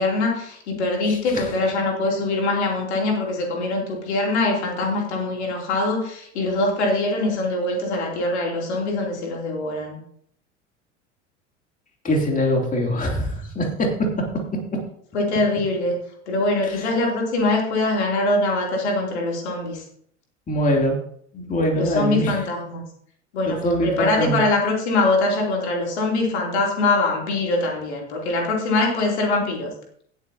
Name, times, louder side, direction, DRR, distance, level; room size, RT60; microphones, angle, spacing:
voice 1, 0.0-10.0 15.1-16.0 16.3-19.8 21.7-22.8 23.3-29.7, left 2 dB, 65° left, -1 dB, 3.1 m, -23 dB
voice 2, 1.1-1.5 12.0-14.2 16.6-16.9 20.5-21.0 21.3-22.5 23.5-24.4, equal, 20° left, 0 dB, 2.9 m, -23 dB
18.5 x 8.1 x 2.8 m, 0.64 s
figure-of-eight pair, 75°, 36 cm